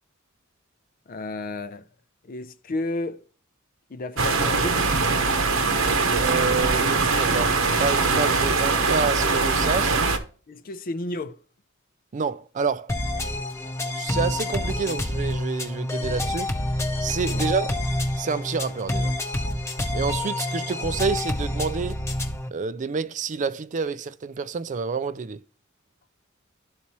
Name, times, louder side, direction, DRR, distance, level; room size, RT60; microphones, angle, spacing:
voice 1, 1.1-1.8 2.3-3.2 3.9-4.8 10.5-11.4 17.3-17.5, left 2 dB, 45° left, 0.5 m, -32 dB
sound 1, 4.2-10.2, right 4 dB, 75° right, 1.0 m, -22 dB
voice 2, 6.1-10.0 12.1-12.9 14.0-16.5 17.0-17.8 18.2-19.1 19.9-22.0 22.5-25.4, right 5 dB, 35° right, 0.4 m, -28 dB
sound 2, 12.9-22.5, left 1 dB, 15° left, 0.8 m, -28 dB
12.0 x 4.2 x 2.9 m
head